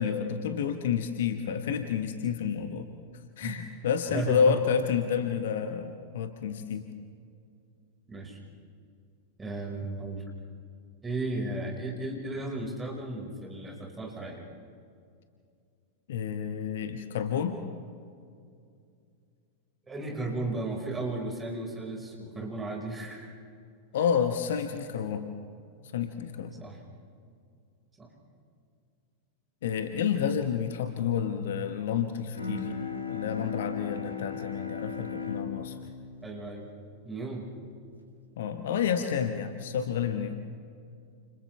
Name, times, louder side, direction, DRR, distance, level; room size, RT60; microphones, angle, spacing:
voice 1, 0.0-2.9 3.4-6.9 16.1-17.6 23.9-25.3 25.9-26.6 29.6-32.7 33.1-35.8 38.4-40.3, left 7 dB, 60° left, 7 dB, 1.3 m, -29 dB
voice 2, 4.1-4.6 8.1-8.4 9.4-10.2 11.0-14.4 19.9-23.3 26.6-26.8 28.0-28.1 36.2-36.6 37.0-37.5, right 2 dB, 15° right, -1 dB, 5.2 m, -35 dB
Bowed string instrument, 32.3-37.8, left 5 dB, 80° left, 2.3 m, -38 dB
30.0 x 29.5 x 3.4 m, 2.3 s
figure-of-eight pair, 90°, 0 cm